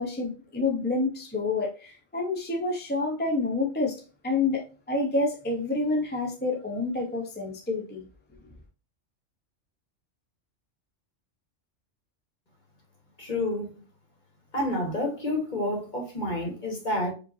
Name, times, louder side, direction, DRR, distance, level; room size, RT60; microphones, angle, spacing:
voice 1, 0.0-8.1, left 3 dB, 10° left, 0.6 m, -28 dB
voice 2, 13.2-13.7 14.5-17.1, left 1 dB, 40° left, 1.7 m, -29 dB
4.9 x 3.1 x 2.7 m
omnidirectional pair, 1.3 m